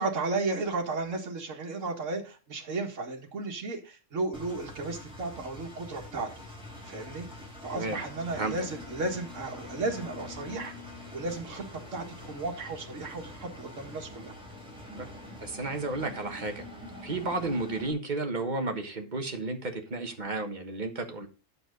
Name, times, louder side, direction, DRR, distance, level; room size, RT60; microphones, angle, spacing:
voice 1, 0.0-6.3 6.8-7.3 7.6-10.7 11.1-11.7 11.9-14.3, right 3 dB, 75° right, 2 dB, 2.0 m, -34 dB
Engine, 4.3-17.9, left 2 dB, 5° right, 4.3 m, -45 dB
voice 2, 15.4-16.7 17.0-21.3, right 2 dB, 35° right, 5 dB, 1.6 m, -32 dB
9.1 x 7.0 x 5.1 m, 0.32 s
omnidirectional pair, 1.3 m